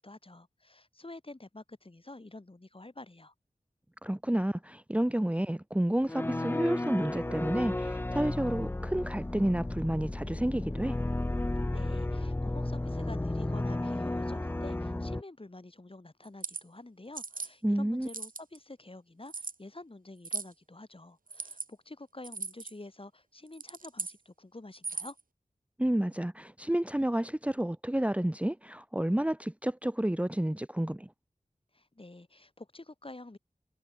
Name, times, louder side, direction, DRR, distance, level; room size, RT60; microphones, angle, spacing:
voice 1, 0.0-3.3 11.7-25.2 31.7-33.4, left 2 dB, 40° left, 6.4 m, -48 dB
voice 2, 4.0-10.9 17.6-18.1 25.8-31.1, right 1 dB, 10° right, 0.9 m, -30 dB
sound 1, 6.1-15.2, left 2 dB, 15° left, 0.5 m, -33 dB
sound 2, 16.2-16.6 17.2-17.5 18.0-18.6 19.3-19.6 20.2-20.5 21.3-21.7 22.2-22.7 23.5-24.2 24.7-25.2, right 4 dB, 90° right, 3.0 m, -38 dB
wide cardioid pair, 55°, 14 cm